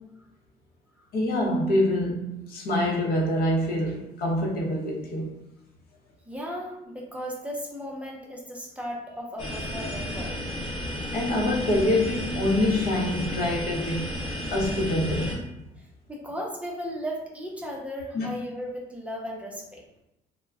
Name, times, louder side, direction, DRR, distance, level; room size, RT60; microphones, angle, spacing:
voice 1, 1.1-5.3 11.1-14.1 14.5-15.4 18.1-18.3, left 1 dB, 65° left, -1 dB, 0.7 m, -25 dB
voice 2, 6.3-10.3 15.8-19.8, equal, 5° right, -3 dB, 0.5 m, -36 dB
sound 1, 9.4-15.4, equal, 30° left, 0.7 m, -33 dB
2.2 x 2.1 x 3.4 m, 0.90 s
cardioid pair, 110°, 17 cm